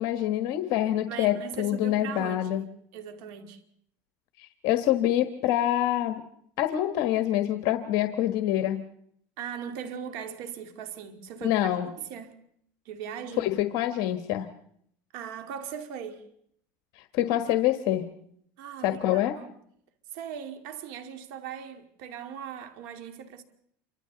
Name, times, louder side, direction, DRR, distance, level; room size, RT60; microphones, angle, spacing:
voice 1, 0.0-2.7 4.4-6.2 6.6-8.9 11.4-11.9 13.4-14.5 16.9-18.0 18.8-19.3, left 12 dB, 60° left, 1.4 m, -26 dB
voice 2, 1.1-2.7 2.9-3.6 9.4-12.3 12.9-13.5 15.1-16.2 18.6-19.5 20.1-23.4, right 8 dB, 70° right, 2.4 m, -39 dB
28.0 x 25.0 x 4.0 m
supercardioid pair, 130°, 8 cm